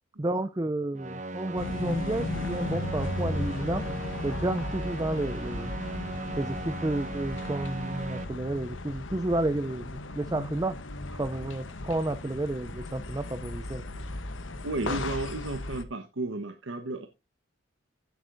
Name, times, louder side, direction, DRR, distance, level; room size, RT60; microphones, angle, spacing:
voice 1, 0.2-3.9 4.2-5.7 6.4-10.8 11.1-13.8 14.9-15.0, right 2 dB, 20° right, 11 dB, 0.4 m, -31 dB
sound 1, 1.0-8.2, right 2 dB, 40° right, 1.0 m, -37 dB
sound 2, 1.6-15.8, left 2 dB, 85° left, 1.0 m, -36 dB
voice 2, 14.6-17.1, right 2 dB, 85° right, 6 dB, 1.1 m, -33 dB
15.5 x 8.0 x 2.6 m, 0.24 s
head